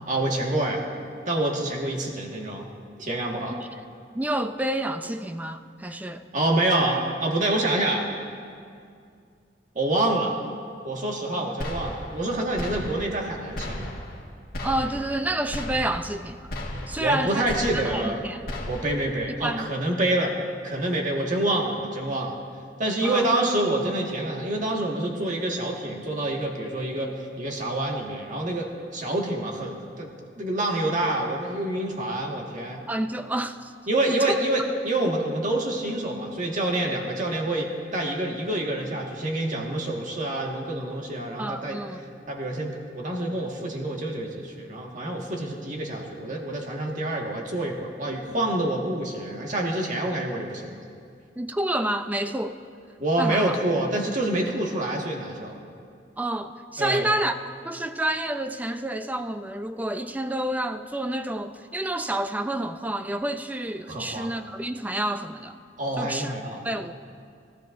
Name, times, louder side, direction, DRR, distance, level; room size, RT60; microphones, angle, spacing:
voice 1, 0.1-0.8 1.2-2.7 3.0-3.6 5.9-6.0 6.3-8.1 9.7-10.3 10.8-13.9 17.0-18.2 18.7-22.3 22.8-30.1 30.4-32.8 33.9-41.8 42.3-50.6 53.0-55.6 56.8-57.1 63.9-64.3 65.8-66.6, right 1 dB, 45° right, 0 dB, 1.7 m, -27 dB
voice 2, 4.1-6.2 14.6-16.5 16.9-18.4 19.4-19.7 23.0-23.3 32.9-33.7 34.0-34.4 41.4-42.0 51.4-52.6 53.2-53.6 56.2-57.4 57.6-65.6 66.0-66.3 66.6-66.9, right 1 dB, 10° right, 8 dB, 0.4 m, -29 dB
sound 1, 11.6-12.3 12.6-13.3 13.6-14.2 14.5-15.2 15.5-16.2 16.5-17.2 17.5-18.2 18.5-19.2, left 1 dB, 55° left, 1.7 m, -35 dB
21.5 x 13.5 x 2.6 m, 2.3 s
head